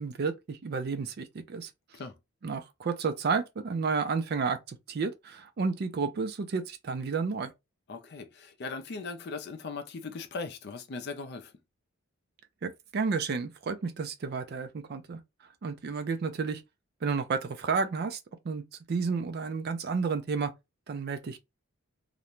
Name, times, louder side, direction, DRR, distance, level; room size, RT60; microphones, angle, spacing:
voice 1, 0.0-1.7 2.4-7.5 12.6-15.2 15.6-16.6 17.0-18.2 18.4-18.6 18.9-20.5 20.9-21.4, right 5 dB, 45° right, 0.4 m, -31 dB
voice 2, 7.9-11.5, left 4 dB, 50° left, 0.4 m, -39 dB
2.5 x 2.1 x 2.9 m
head